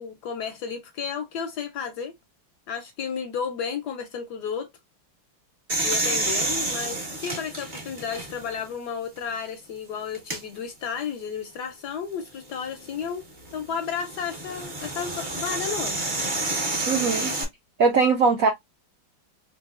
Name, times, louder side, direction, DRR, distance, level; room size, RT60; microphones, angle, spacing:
voice 1, 0.0-2.1 2.7-4.7 5.8-13.3 13.5-16.0, left 7 dB, 75° left, 1.0 m, -32 dB
sound 1, 5.7-8.6 9.2-9.3 10.1-10.4 12.6-17.4, right 2 dB, 40° right, 0.7 m, -29 dB
voice 2, 16.9-17.3 17.8-18.5, right 4 dB, 75° right, 0.8 m, -20 dB
4.6 x 2.5 x 2.4 m
omnidirectional pair, 2.2 m